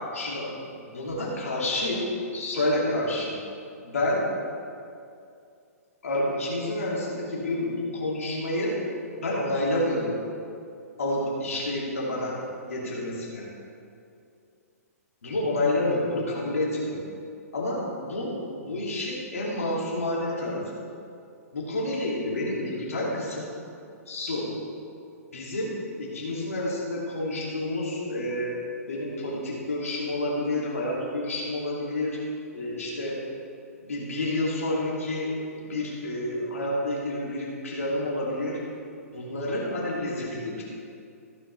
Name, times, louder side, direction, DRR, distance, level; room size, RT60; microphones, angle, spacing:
voice 1, 0.1-3.4 3.8-4.2 6.0-8.8 9.2-10.2 11.0-12.4 12.6-13.5 15.2-17.0 17.5-20.6 21.5-23.5 24.1-24.5 25.3-28.6 28.9-32.2 32.5-33.2 33.8-35.3 35.6-38.6 39.1-40.7, left 1 dB, 65° left, -5 dB, 2.6 m, -29 dB
15.0 x 9.0 x 3.4 m, 2.5 s
figure-of-eight pair, 115°, 8 cm